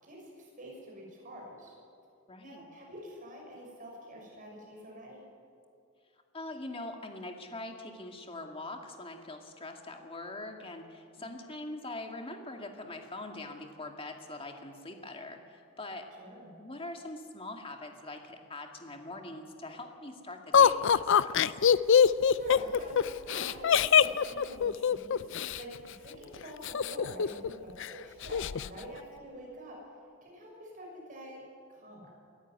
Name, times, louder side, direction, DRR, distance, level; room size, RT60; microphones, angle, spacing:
voice 1, 0.0-1.7 2.4-5.3 11.2-11.5 16.2-16.5 22.3-25.3 25.6-29.8 30.2-31.4 31.7-32.1, right 1 dB, 40° right, -1 dB, 6.5 m, -46 dB
voice 2, 2.3-2.7 6.3-16.1 16.6-21.4, left 2 dB, 25° left, 4 dB, 1.9 m, -43 dB
Laughter, 20.5-25.6 26.6-27.5 27.8-27.9 28.2-28.7, left 7 dB, 60° left, 0.5 m, -23 dB
23.0 x 13.5 x 9.5 m, 2.4 s
head